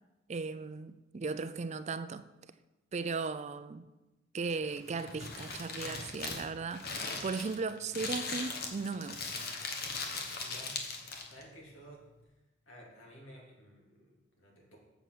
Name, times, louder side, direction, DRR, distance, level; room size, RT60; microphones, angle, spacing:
voice 1, 0.3-2.2 2.9-3.9 4.3-9.4, right 4 dB, 35° right, 0.4 m, -37 dB
Crumpling crinkling, 4.6-11.4, left 3 dB, 50° left, 1.3 m, -39 dB
voice 2, 10.4-10.8 11.2-12.3 12.7-14.8, equal, 80° left, 2.9 m, -54 dB
7.6 x 6.9 x 6.1 m
head